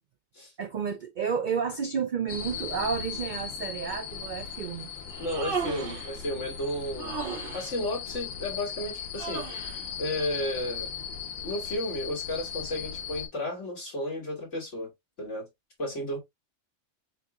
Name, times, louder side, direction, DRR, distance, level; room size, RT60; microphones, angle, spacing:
voice 1, 0.6-4.9, right 6 dB, 65° right, 0.4 m, -31 dB
sound 1, 2.3-13.3, left 7 dB, 85° left, 1.4 m, -38 dB
Human voice, 5.1-6.1 7.0-7.7 9.1-9.8, right 5 dB, 45° right, 1.2 m, -35 dB
voice 2, 5.2-7.2 7.5-9.6 10.0-10.9 11.4-14.9 15.2-15.5 15.8-16.2, left 1 dB, 65° left, 3.1 m, -33 dB
7.2 x 2.9 x 2.3 m
omnidirectional pair, 1.3 m